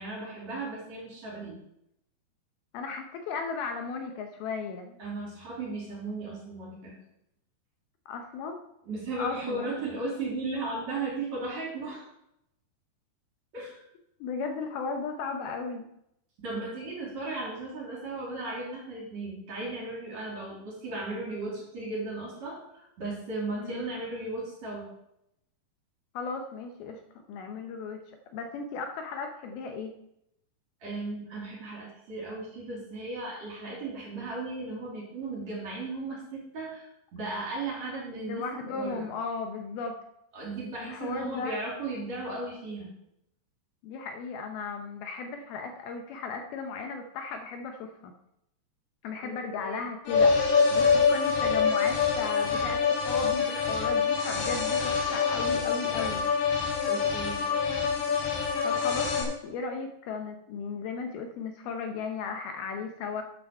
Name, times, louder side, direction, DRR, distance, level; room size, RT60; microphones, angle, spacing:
voice 1, 0.0-1.6 5.0-7.0 8.9-12.1 13.5-13.9 16.4-24.9 30.8-36.9 37.1-39.1 40.3-43.0 49.2-49.8 56.8-57.4, right 2 dB, 45° right, -3 dB, 3.9 m, -36 dB
voice 2, 2.7-5.0 8.1-8.6 9.2-9.7 14.2-15.9 23.6-23.8 26.1-27.0 27.3-28.0 28.3-29.9 38.2-40.0 40.8-41.6 43.8-48.1 49.0-56.3 58.6-63.2, left 4 dB, 75° left, 5 dB, 2.6 m, -36 dB
sound 1, 50.1-59.2, left 5 dB, 90° left, 5.0 m, -25 dB
9.5 x 6.7 x 6.6 m, 0.79 s
omnidirectional pair, 4.8 m